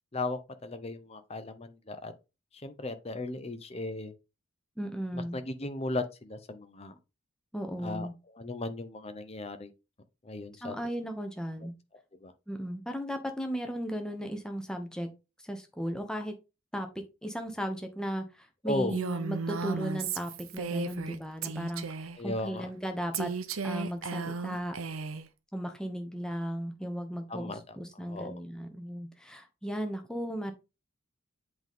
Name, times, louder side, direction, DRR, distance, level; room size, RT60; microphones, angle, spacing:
voice 1, 0.1-2.1 2.5-4.1 5.1-7.0 7.8-8.1 8.3-9.7 10.2-10.8 12.2-12.3 18.6-19.0 22.2-22.7 27.3-28.4, left 2 dB, 30° left, 0.7 m, -36 dB
voice 2, 4.8-5.4 7.5-8.1 10.6-11.7 12.5-15.1 15.4-16.3 16.7-16.9 17.2-21.9 22.2-23.3 23.6-24.7 25.5-30.5, equal, 5° left, 1.0 m, -36 dB
Female speech woman speaking, 18.9-21.2 21.4-22.2 23.1-25.3, right 4 dB, 90° right, 0.7 m, -35 dB
7.9 x 3.8 x 3.6 m
head